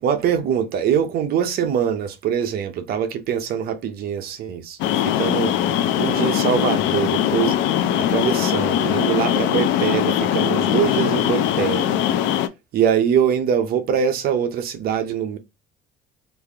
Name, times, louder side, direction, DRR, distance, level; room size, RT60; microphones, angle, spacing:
voice 1, 0.0-5.6 6.0-7.6 7.9-12.0 12.7-15.4, right 8 dB, 55° right, 0.6 m, -23 dB
sound 1, 4.8-12.5, left 11 dB, 75° left, 0.4 m, -21 dB
3.2 x 2.4 x 3.3 m
cardioid pair, 160°, 19 cm